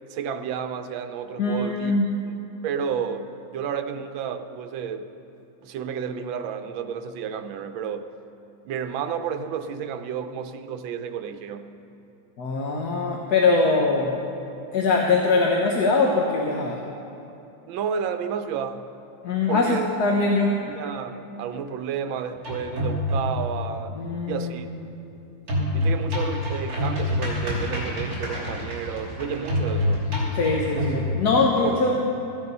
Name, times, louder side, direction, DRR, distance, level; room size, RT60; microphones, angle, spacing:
voice 1, 0.1-1.9 2.6-5.1 5.6-8.1 8.6-11.7 13.7-13.8 17.7-18.8 19.5-19.9 20.7-24.0 24.3-24.7 25.7-30.1 31.6-31.8, right 7 dB, 80° right, 9 dB, 1.4 m, -31 dB
voice 2, 1.4-2.1 12.4-14.2 14.7-16.8 19.2-20.5 23.9-24.7 30.3-32.0, left 3 dB, 60° left, -1 dB, 1.4 m, -22 dB
sound 1, 22.4-23.5 25.5-31.0, left 1 dB, 45° right, 3.7 m, -26 dB
14.5 x 10.5 x 5.4 m, 2.7 s
omnidirectional pair, 2.1 m